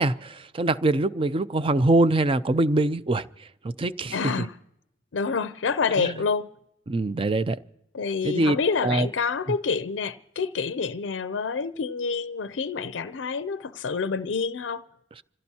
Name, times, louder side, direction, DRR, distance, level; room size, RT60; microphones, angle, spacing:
voice 1, 0.0-3.3 3.8-4.5 6.0-6.2 6.9-7.6 8.2-8.6 8.8-9.1, right 2 dB, 30° right, 0.5 m, -23 dB
voice 2, 4.1-4.5 5.1-6.5 7.9-14.8, left 5 dB, 80° left, 0.5 m, -27 dB
27.0 x 16.5 x 2.8 m
head